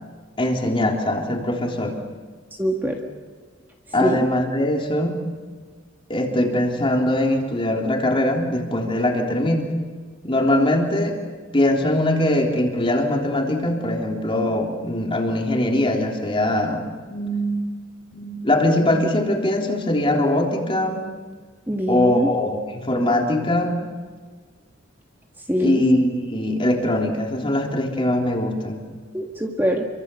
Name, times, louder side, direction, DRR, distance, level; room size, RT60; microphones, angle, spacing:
voice 1, 0.4-2.0 3.9-5.2 6.1-9.7 10.2-11.2 11.5-16.9 17.1-17.6 18.1-21.0 21.9-23.8 25.6-28.9, left 1 dB, 25° left, 1 dB, 3.6 m, -21 dB
voice 2, 2.6-3.0 4.0-4.2 21.7-22.3 25.5-25.8 29.1-29.8, equal, 10° right, 1 dB, 1.9 m, -23 dB
28.0 x 24.0 x 7.1 m, 1.5 s
head